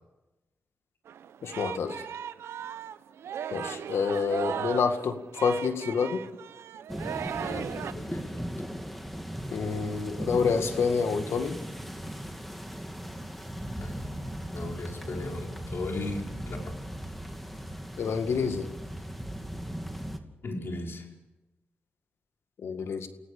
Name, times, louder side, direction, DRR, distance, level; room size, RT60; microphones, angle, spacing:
Singing, 1.1-7.9, right 9 dB, 85° right, 0.8 m, -37 dB
voice 1, 1.4-2.0 3.5-6.2 9.5-11.5 18.0-18.7 22.6-23.1, left 5 dB, 75° left, 8 dB, 2.0 m, -28 dB
sound 1, 6.9-20.2, equal, 5° left, 2.5 m, -38 dB
voice 2, 7.3-8.5 13.8-14.1 14.5-16.6 20.4-21.0, left 2 dB, 60° left, 1 dB, 4.9 m, -37 dB
29.0 x 17.5 x 6.8 m, 1.0 s
cardioid pair, 60°, 4 cm